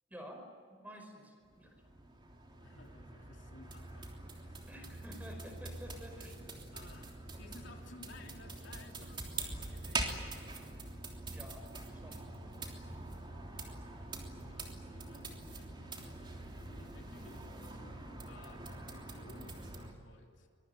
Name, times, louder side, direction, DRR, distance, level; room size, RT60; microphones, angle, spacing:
voice 1, 0.1-1.8 4.7-6.4 11.3-11.7 11.9-12.3, equal, 10° right, 4 dB, 5.1 m, -51 dB
sound 1, 1.4-19.9, right 2 dB, 25° right, 3.3 m, -44 dB
voice 2, 2.6-4.7 6.7-10.4 13.9-20.5, left 2 dB, 60° left, 1 dB, 3.3 m, -57 dB
24.0 x 23.0 x 9.2 m, 2.3 s
head